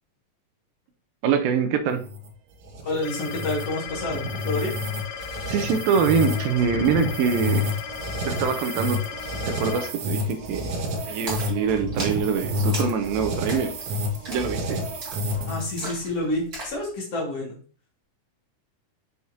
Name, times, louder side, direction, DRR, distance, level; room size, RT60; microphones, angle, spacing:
voice 1, 1.2-2.0 5.5-7.7 8.3-9.0 9.3-10.7 11.1-13.7 14.3-14.8, right 6 dB, 85° right, 8 dB, 2.5 m, -24 dB
sound 1, 1.9-15.8, left 1 dB, 60° right, 2.5 m, -30 dB
voice 2, 2.8-4.7 15.5-17.6, left 1 dB, 50° left, -2 dB, 2.7 m, -28 dB
sound 2, 3.0-9.9, left 8 dB, 75° left, 2.1 m, -36 dB
Splash splatter, 11.3-16.8, right 1 dB, 30° right, 2.3 m, -38 dB
7.0 x 6.3 x 2.8 m, 0.42 s
omnidirectional pair, 4.1 m